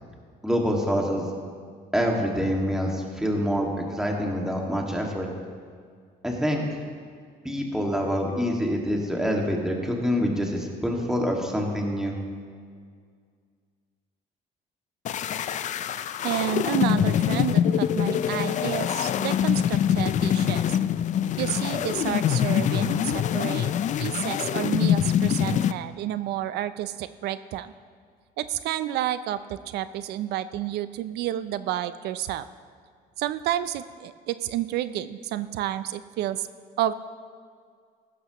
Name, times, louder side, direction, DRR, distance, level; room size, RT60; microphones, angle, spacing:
voice 1, 0.4-1.2 1.9-5.3 6.2-6.6 7.4-12.1, equal, 5° right, -1 dB, 2.0 m, -26 dB
sound 1, 15.1-25.7, left 9 dB, 45° left, 0.4 m, -24 dB
voice 2, 16.2-20.8 21.4-23.7 24.0-27.7 28.4-32.5 33.2-36.5 36.8-36.9, right 12 dB, 80° right, 13 dB, 0.5 m, -30 dB
16.0 x 12.5 x 3.0 m, 2.1 s
cardioid pair, 110°, 17 cm